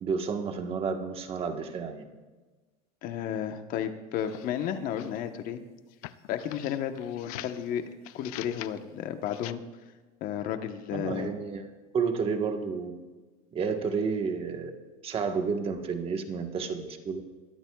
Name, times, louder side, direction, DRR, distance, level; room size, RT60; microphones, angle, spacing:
voice 1, 0.0-2.0 10.9-11.6 11.9-12.9 13.5-14.7 15.0-17.2, right 5 dB, 30° right, 4 dB, 1.4 m, -31 dB
voice 2, 3.0-5.6 6.3-7.8 8.1-9.6 10.2-11.3, left 9 dB, 50° left, 7 dB, 1.2 m, -32 dB
sound 1, 4.2-5.3 5.9-7.7 8.0-8.8 9.3-9.5, left 15 dB, 90° left, 0.6 m, -44 dB
22.0 x 13.5 x 2.4 m, 1.3 s
supercardioid pair, 140°, 18 cm